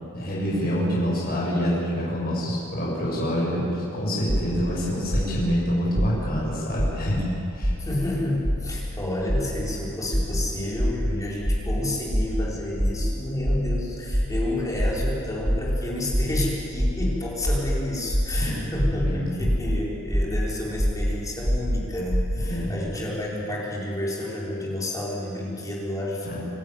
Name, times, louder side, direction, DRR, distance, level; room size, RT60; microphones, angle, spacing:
voice 1, 0.1-7.2 7.5-7.7 18.4-18.7 18.9-19.5 22.4-22.8 26.2-26.4, equal, 45° left, -5 dB, 7.1 m, -26 dB
sound 1, 4.3-4.6 5.1-5.4 6.0-6.3 6.8-7.1 7.6-8.0 8.4-8.8 9.3-9.6 10.1-10.4 10.8-11.1 11.5-11.7 12.1-12.4 12.8-13.1 13.5-13.7 14.1-14.4 14.8-15.1 15.5-15.8 16.1-16.4 16.8-17.1 17.4-17.8 18.1-18.4 18.8-19.1 19.4-19.8 20.1-20.4 20.8-21.1 21.5-21.8 22.1-22.4, equal, 30° right, 6.0 m, -23 dB
voice 2, 7.8-26.4, left 1 dB, 15° left, -5 dB, 4.6 m, -30 dB
26.0 x 12.5 x 9.2 m, 2.8 s
head